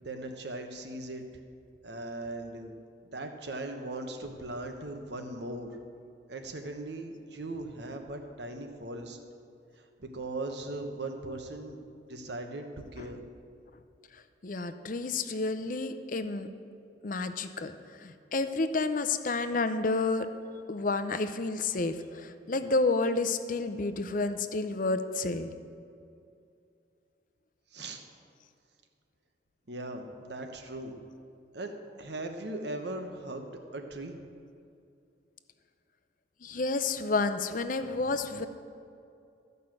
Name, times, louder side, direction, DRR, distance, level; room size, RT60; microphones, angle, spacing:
voice 1, 0.0-1.2 1.8-2.7 3.0-5.8 6.3-9.2 10.0-11.8 12.1-13.2 27.7-28.0 29.7-31.0 31.5-34.2 36.5-36.6 37.8-38.2, right 2 dB, 65° right, 5 dB, 1.1 m, -39 dB
voice 2, 14.4-16.5 17.0-17.7 18.0-20.3 20.7-25.5 36.4-38.5, left 3 dB, 45° left, 10 dB, 0.6 m, -30 dB
14.0 x 5.5 x 7.7 m, 2.5 s
head